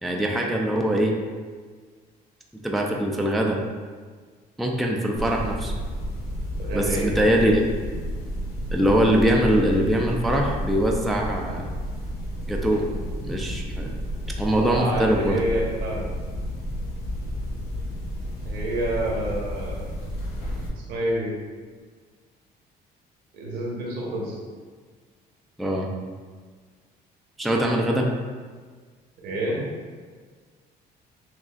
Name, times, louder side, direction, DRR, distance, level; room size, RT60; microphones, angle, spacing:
voice 1, 0.0-1.1 2.6-3.6 4.6-5.7 6.7-7.6 8.7-11.7 12.5-12.9 13.2-13.9 14.4-15.4 25.6-25.9 27.4-28.1, equal, ahead, 0 dB, 0.4 m, -22 dB
sound 1, 5.2-20.7, equal, 90° left, 1.0 m, -31 dB
voice 2, 6.6-7.1 14.6-16.1 18.4-19.8 20.9-21.3 23.3-24.4 29.2-29.6, right 1 dB, 75° right, -3 dB, 1.2 m, -28 dB
6.2 x 2.4 x 2.4 m, 1.5 s
cardioid pair, 110°, 17 cm